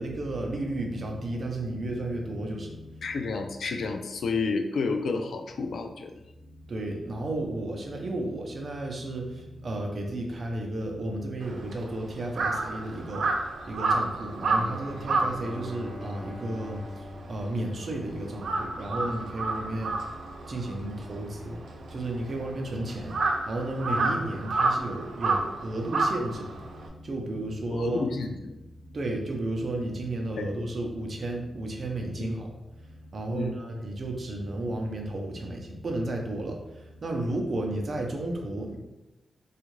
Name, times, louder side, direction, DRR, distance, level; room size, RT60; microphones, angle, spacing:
voice 1, 0.0-3.2 6.4-28.1 28.8-38.8, right 1 dB, 40° right, 1 dB, 0.5 m, -33 dB
voice 2, 3.0-6.1 23.8-24.0 27.7-28.5 30.4-30.5 32.1-32.4 33.3-33.5, left 4 dB, 70° left, 5 dB, 0.3 m, -31 dB
Crow, 11.4-18.0 18.3-26.9, right 3 dB, 90° right, 0.4 m, -30 dB
Bowed string instrument, 14.5-18.5, left 1 dB, 10° left, 0.7 m, -42 dB
3.5 x 2.4 x 3.1 m, 0.95 s
wide cardioid pair, 175°, 0 cm